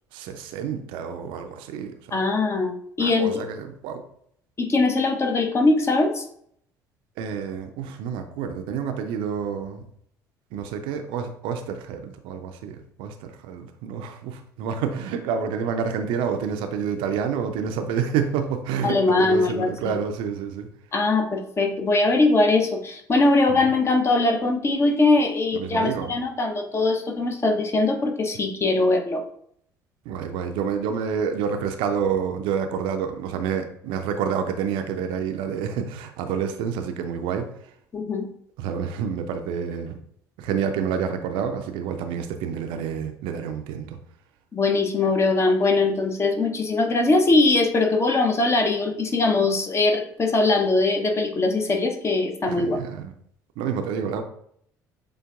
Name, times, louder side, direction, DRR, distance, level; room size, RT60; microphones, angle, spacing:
voice 1, 0.1-2.2 3.0-4.0 7.2-9.8 10.5-20.7 23.5-23.6 25.5-26.1 30.1-37.5 38.6-39.9 40.4-44.0 52.5-53.1 53.6-54.2, right 7 dB, 55° right, 6 dB, 0.5 m, -28 dB
voice 2, 2.1-3.4 4.6-6.2 18.8-20.0 20.9-29.2 37.9-38.3 44.5-52.8, left 3 dB, 25° left, 4 dB, 0.7 m, -21 dB
7.0 x 2.5 x 2.4 m, 0.67 s
figure-of-eight pair, 55°, 10 cm